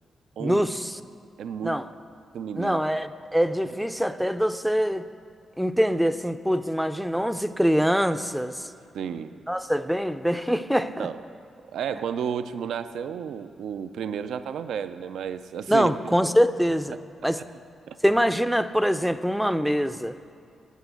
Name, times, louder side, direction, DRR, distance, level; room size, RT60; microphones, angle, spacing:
voice 1, 0.4-1.0 1.6-1.9 2.6-5.0 5.6-8.7 9.5-11.1 15.7-17.0 17.2-17.4 18.0-20.2, equal, ahead, 11 dB, 0.3 m, -24 dB
voice 2, 1.4-1.8 2.3-2.8 8.9-9.3 11.0-11.2 11.7-15.9 16.2-16.3 17.9-18.0, right 8 dB, 90° right, 12 dB, 0.4 m, -32 dB
9.5 x 8.2 x 8.0 m, 2.5 s
wide cardioid pair, 145°, 0 cm